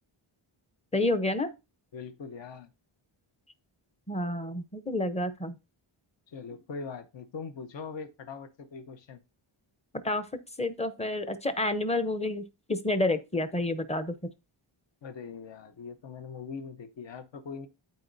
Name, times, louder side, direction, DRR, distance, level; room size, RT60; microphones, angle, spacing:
voice 1, 0.9-1.5 4.1-5.6 10.0-10.2 10.6-12.4 12.7-14.1, left 2 dB, 15° left, 0.7 m, -29 dB
voice 2, 1.9-2.7 6.3-9.2 15.0-17.7, left 5 dB, 60° left, 1.0 m, -41 dB
12.0 x 4.5 x 2.6 m
wide cardioid pair, 145°, 50 cm